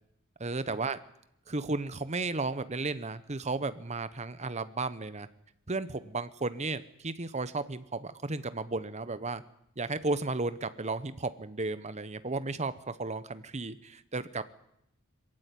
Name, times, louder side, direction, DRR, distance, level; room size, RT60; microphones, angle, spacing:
voice 1, 0.4-1.0 1.5-5.3 5.7-9.4 9.8-14.6, right 3 dB, 30° right, 13 dB, 1.0 m, -34 dB
21.5 x 15.0 x 9.3 m, 0.78 s
head